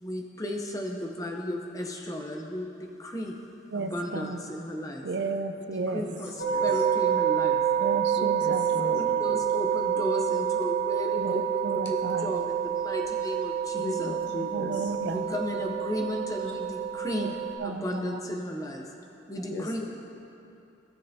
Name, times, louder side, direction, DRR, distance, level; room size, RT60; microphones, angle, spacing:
voice 1, 0.0-3.3 3.7-5.0 5.7-7.6 9.2-14.1 15.1-17.3 17.6-18.8 19.3-19.8, left 1 dB, 20° left, 1 dB, 0.7 m, -34 dB
voice 2, 3.7-4.4 5.0-6.0 7.8-8.7 11.2-11.3 11.6-12.4 14.5-15.2 17.1-17.3 17.6-18.2, right 3 dB, 65° right, 7 dB, 0.5 m, -33 dB
voice 3, 5.9-6.7 8.4-9.2 13.8-14.9 19.5-19.8, left 1 dB, 70° left, -1 dB, 1.2 m, -37 dB
sound 1, 6.4-17.5, right 8 dB, 85° left, 1.6 m, -28 dB
17.5 x 6.5 x 2.8 m, 2.8 s
head